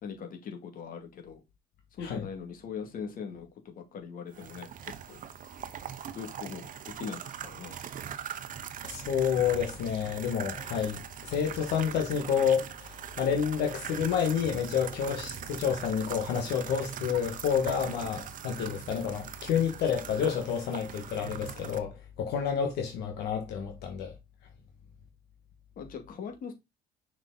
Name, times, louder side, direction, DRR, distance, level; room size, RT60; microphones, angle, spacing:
voice 1, 0.0-1.4 1.9-5.2 6.1-7.8 25.8-26.5, left 6 dB, 55° left, 2.2 m, -41 dB
sound 1, 4.3-21.8, right 9 dB, 50° right, 0.9 m, -41 dB
voice 2, 8.8-24.1, left 7 dB, 80° left, 1.7 m, -29 dB
6.2 x 5.1 x 3.9 m
cardioid pair, 110°, 17 cm